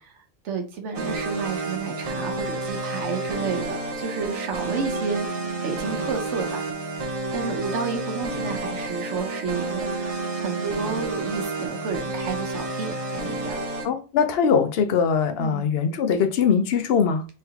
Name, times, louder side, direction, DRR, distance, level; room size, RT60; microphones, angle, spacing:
voice 1, 0.4-5.3 5.6-6.6 7.0-13.6 15.4-15.7, right 5 dB, 90° right, 1.1 m, -31 dB
sound 1, 0.9-13.9, right 2 dB, 40° right, 0.6 m, -30 dB
voice 2, 13.8-17.3, left 6 dB, 65° left, 0.8 m, -21 dB
3.9 x 3.1 x 2.8 m
omnidirectional pair, 1.2 m